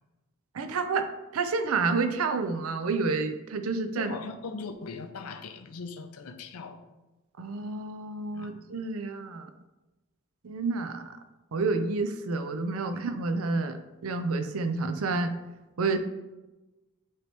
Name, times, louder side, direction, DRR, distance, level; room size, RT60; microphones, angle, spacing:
voice 1, 0.5-4.1 7.4-9.5 10.4-11.2 11.5-15.3 15.8-16.0, right 3 dB, 70° right, 8 dB, 0.5 m, -29 dB
voice 2, 4.0-6.9 8.3-8.5 12.9-13.0, left 4 dB, 90° left, 8 dB, 0.6 m, -40 dB
9.4 x 3.3 x 3.0 m, 1.1 s
head